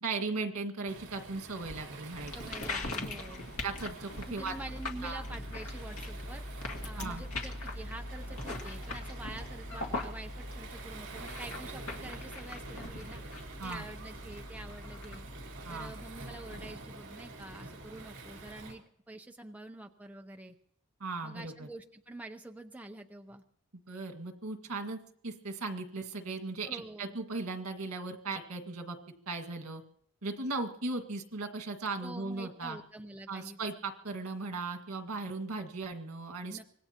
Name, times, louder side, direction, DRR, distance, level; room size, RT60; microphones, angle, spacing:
voice 1, 0.0-2.3 3.6-4.5 5.0-5.2 7.0-7.2 13.6-13.9 15.7-15.9 21.0-21.7 23.9-29.0 29.3-29.8 30.2-32.8 33.3-36.6, right 3 dB, 85° right, 3 dB, 1.9 m, -37 dB
Waves surf, 0.9-18.7, right 2 dB, 60° right, 3.8 m, -47 dB
sound 1, 2.1-16.7, left 2 dB, 80° left, 2.0 m, -41 dB
voice 2, 2.3-3.5 4.3-6.4 6.8-13.2 13.6-15.2 15.7-20.6 21.2-23.4 26.7-27.2 32.0-33.6 36.5-36.6, right 2 dB, 5° right, 4 dB, 0.6 m, -47 dB
25.0 x 19.5 x 2.9 m, 0.68 s
head